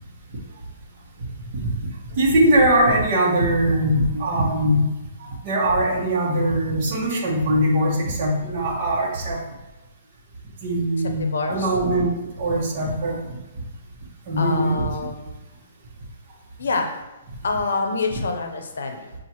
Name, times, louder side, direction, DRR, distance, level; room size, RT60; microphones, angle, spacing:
voice 1, 2.2-4.9 5.2-9.4 10.6-12.1 12.4-13.2 14.3-14.9, right 1 dB, 45° right, -4 dB, 1.1 m, -21 dB
voice 2, 11.2-11.7 14.4-15.3 16.6-16.9 17.4-19.1, left 3 dB, 80° left, 4 dB, 0.6 m, -26 dB
7.1 x 2.5 x 2.9 m, 1.0 s
hypercardioid pair, 150°, 0 cm